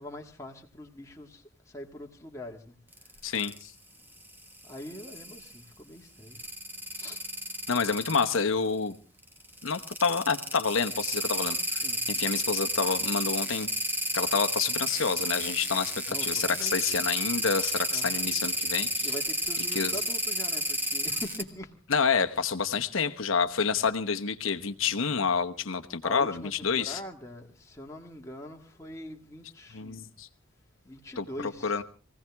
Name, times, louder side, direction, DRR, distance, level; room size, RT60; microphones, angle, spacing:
voice 1, 0.0-1.4 1.7-2.8 4.6-6.4 7.0-7.2 11.8-12.0 16.1-16.8 17.9-18.3 19.0-21.7 24.8-25.0 26.0-30.0 30.9-31.8, left 1 dB, 15° left, 1 dB, 1.8 m, -43 dB
sound 1, 2.9-3.6 4.2-5.6 6.3-8.4 9.5-21.4, right 1 dB, 10° right, 1.5 m, -31 dB
voice 2, 3.2-3.7 7.7-9.0 9.6-11.8 12.1-13.7 14.1-19.1 19.7-19.9 21.9-27.0 29.7-30.3 31.2-31.8, left 5 dB, 80° left, 8 dB, 1.1 m, -28 dB
23.5 x 16.5 x 3.5 m, 0.36 s
head